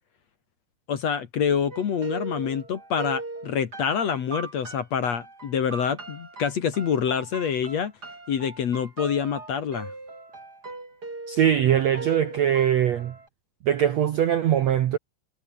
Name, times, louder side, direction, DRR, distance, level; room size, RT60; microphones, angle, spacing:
voice 1, 0.9-7.9 8.3-9.9, left 7 dB, 50° left, 2.5 m, -26 dB
sound 1, 1.7-13.3, right 2 dB, 25° right, 5.6 m, -39 dB
voice 2, 11.3-13.2 13.6-15.0, right 10 dB, 65° right, 1.7 m, -22 dB
omnidirectional pair, 4.5 m